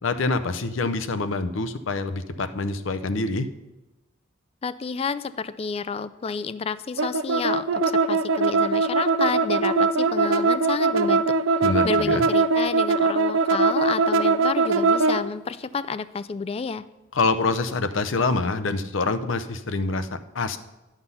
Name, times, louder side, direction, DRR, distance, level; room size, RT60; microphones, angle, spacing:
voice 1, 0.0-3.5 11.6-12.2 17.1-20.6, left 3 dB, 75° left, 10 dB, 0.6 m, -26 dB
voice 2, 4.6-11.6 11.8-16.8, left 5 dB, 30° left, 15 dB, 0.3 m, -30 dB
sound 1, 7.0-15.2, right 3 dB, 85° right, 0.5 m, -21 dB
11.0 x 6.0 x 5.5 m, 1.0 s
head